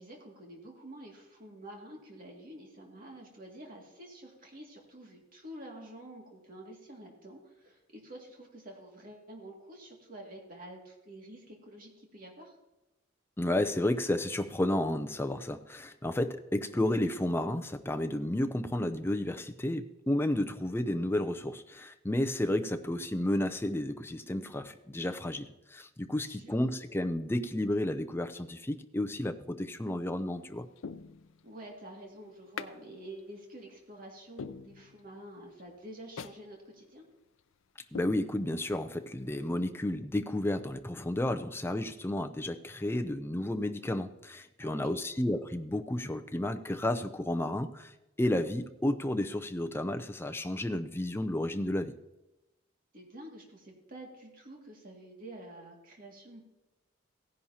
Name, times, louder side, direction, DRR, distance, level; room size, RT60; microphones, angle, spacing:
voice 1, 0.0-12.6 26.2-26.6 31.4-37.1 44.6-44.9 52.9-56.4, right 1 dB, 45° right, 0 dB, 2.3 m, -48 dB
voice 2, 13.4-30.7 37.9-47.9 48.2-51.9, left 1 dB, 10° left, 8 dB, 0.5 m, -32 dB
sound 1, 29.8-30.2 30.8-31.7 32.6-32.8 33.2-33.3 33.8-33.9 34.4-35.3 35.6-35.7 36.2-36.4 36.8-36.9 37.4-37.5 37.9-38.8 39.2-39.3, left 5 dB, 80° left, 0.5 m, -44 dB
16.5 x 10.5 x 2.8 m, 0.97 s
head